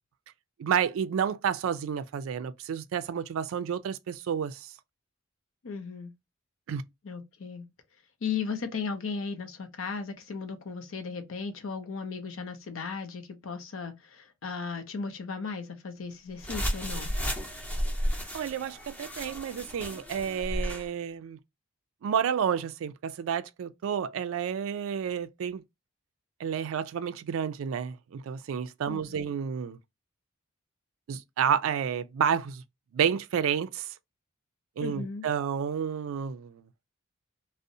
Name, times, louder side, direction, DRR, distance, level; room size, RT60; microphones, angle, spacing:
voice 1, 0.6-4.7 6.7-6.8 18.3-21.4 22.0-25.6 26.4-29.8 31.1-32.6 32.9-33.9 34.8-36.6, right 8 dB, 70° right, 0.3 m, -30 dB
voice 2, 5.6-6.1 7.0-7.6 8.2-17.1 28.9-29.3 34.8-35.3, left 5 dB, 65° left, 0.6 m, -36 dB
sound 1, 16.4-20.9, equal, 10° left, 0.6 m, -33 dB
2.5 x 2.0 x 2.6 m
head